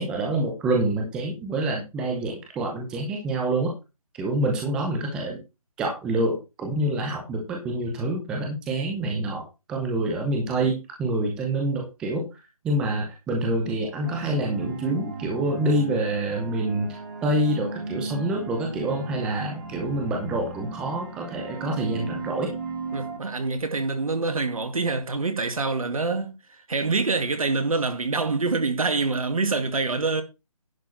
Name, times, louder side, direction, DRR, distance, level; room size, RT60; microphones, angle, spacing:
voice 1, 0.0-3.7 4.1-5.4 5.8-12.3 12.6-22.5, right 1 dB, 5° right, 0.9 m, -27 dB
sound 1, 14.0-23.2, right 3 dB, 35° right, 2.8 m, -36 dB
voice 2, 22.9-26.4 26.7-30.2, right 3 dB, 70° right, 2.2 m, -25 dB
10.5 x 4.8 x 5.8 m
hypercardioid pair, 170°, 19 cm